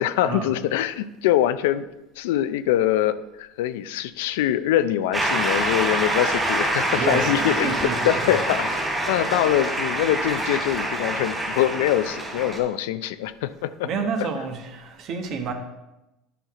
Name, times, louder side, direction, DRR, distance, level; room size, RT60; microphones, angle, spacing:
voice 1, 0.0-1.9 2.2-8.8 9.1-13.9, left 12 dB, 85° left, 13 dB, 0.4 m, -24 dB
Shout / Cheering / Applause, 5.1-12.6, right 1 dB, 10° right, 2.7 m, -26 dB
sound 1, 6.8-12.1, equal, 70° right, 2.7 m, -40 dB
voice 2, 6.9-8.4 13.8-15.5, right 5 dB, 50° right, 4 dB, 1.3 m, -29 dB
10.0 x 5.8 x 3.7 m, 0.96 s
supercardioid pair, 125°, 0 cm